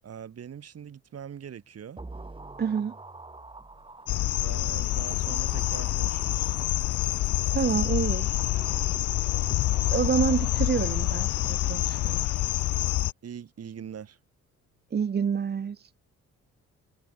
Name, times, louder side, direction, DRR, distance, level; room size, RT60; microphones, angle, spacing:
voice 1, 0.0-2.0 4.3-6.6 13.2-14.2, right 8 dB, 55° right, 4.1 m, -42 dB
sound 1, 2.0-7.4 8.1-11.3 11.6-11.7, right 3 dB, 15° right, 3.1 m, -47 dB
voice 2, 2.6-3.0 7.5-8.3 9.9-12.3 14.9-15.9, right 7 dB, 35° right, 0.8 m, -28 dB
sound 2, 4.1-13.1, left 15 dB, 80° left, 1.0 m, -27 dB
cardioid pair, 90°, 30 cm